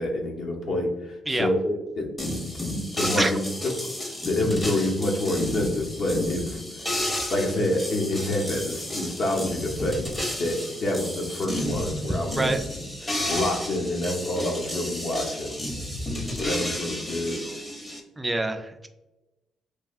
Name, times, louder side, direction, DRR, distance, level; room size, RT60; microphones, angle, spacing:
voice 1, 0.0-2.1 2.7-3.9 4.2-6.6 7.3-12.5 13.0-15.5 16.1-17.5, left 1 dB, 60° left, 0 dB, 0.8 m, -27 dB
sound 1, 2.2-18.0, left 1 dB, 20° left, 0.7 m, -32 dB
voice 2, 18.2-18.9, right 2 dB, 15° right, 6 dB, 0.3 m, -25 dB
3.2 x 2.3 x 2.5 m, 1.0 s
cardioid pair, 90°, 0 cm